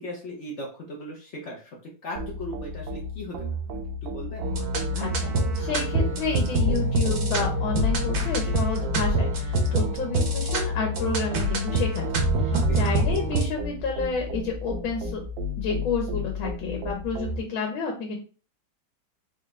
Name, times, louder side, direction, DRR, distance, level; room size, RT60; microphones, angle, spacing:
voice 1, 0.0-4.5 12.5-12.9, equal, 55° left, -2 dB, 0.8 m, -38 dB
sound 1, 2.2-17.4, left 1 dB, 75° right, 1.3 m, -33 dB
sound 2, 4.4-13.4, right 1 dB, 60° right, 1.1 m, -25 dB
voice 2, 4.9-15.2 15.6-18.2, left 4 dB, 80° left, 1 dB, 1.6 m, -30 dB
4.0 x 2.4 x 3.2 m, 0.36 s
omnidirectional pair, 2.2 m